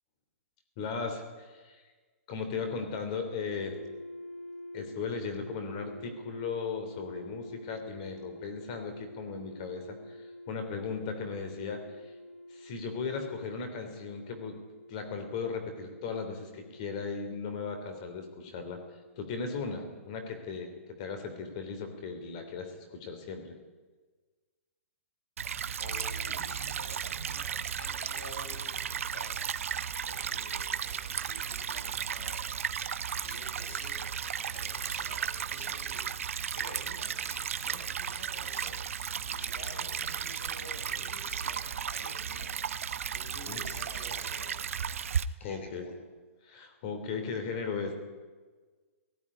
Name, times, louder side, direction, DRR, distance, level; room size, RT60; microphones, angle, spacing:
voice 1, 0.8-1.8 2.3-3.7 4.7-12.1 12.5-14.5 14.9-18.8 19.2-20.7 21.0-23.6 43.5-43.6 45.4-45.9 46.4-47.9, left 5 dB, 30° left, 7 dB, 3.3 m, -37 dB
sound 1, 3.3-21.3, left 1 dB, 80° left, 3.2 m, -48 dB
Stream / Trickle dribble, 25.4-45.2, right 7 dB, 70° right, 1.0 m, -35 dB
voice 2, 25.8-29.3 30.0-32.4 33.1-42.6 43.0-44.6 45.4-45.9, left 2 dB, 60° left, 4 dB, 6.0 m, -49 dB
17.5 x 17.0 x 9.9 m, 1.3 s
hypercardioid pair, 175°, 8 cm